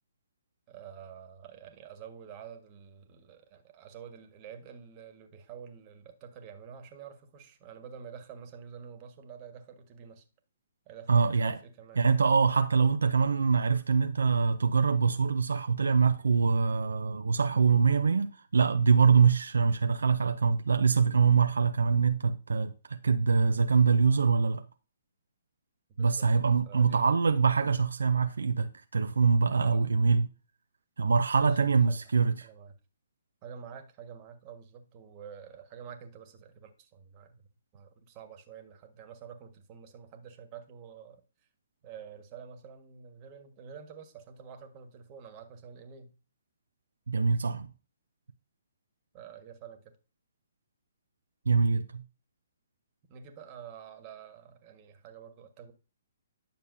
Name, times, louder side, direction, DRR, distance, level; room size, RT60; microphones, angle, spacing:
voice 1, 0.7-10.2 10.8-12.0 26.0-27.0 29.6-29.9 31.5-32.2 32.4-32.8 33.4-37.4 37.7-41.2 41.8-46.1 49.1-49.9 53.1-55.7, right 7 dB, 35° right, 1.5 m, -48 dB
voice 2, 11.1-11.6 12.0-24.6 26.0-30.3 31.0-32.5 47.1-47.7 51.5-52.0, right 5 dB, 80° right, 0.6 m, -24 dB
10.0 x 6.6 x 2.7 m
figure-of-eight pair, 130°, 0 cm